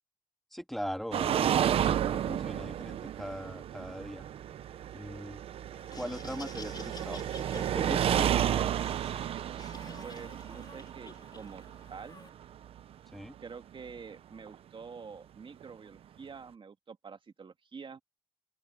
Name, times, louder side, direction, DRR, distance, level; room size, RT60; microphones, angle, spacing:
voice 1, 0.5-4.3 4.9-5.4 5.9-8.7 13.1-13.3, equal, ahead, 2.9 m, -40 dB
sound 1, 1.1-12.8 14.5-14.6 15.6-15.7, right 10 dB, 85° right, 0.8 m, -32 dB
Laughter, 5.7-12.3, left 4 dB, 45° left, 4.7 m, -49 dB
voice 2, 10.0-11.6 11.9-12.2 13.4-18.0, right 5 dB, 60° right, 2.2 m, -47 dB
open air
supercardioid pair, 40°, 10 cm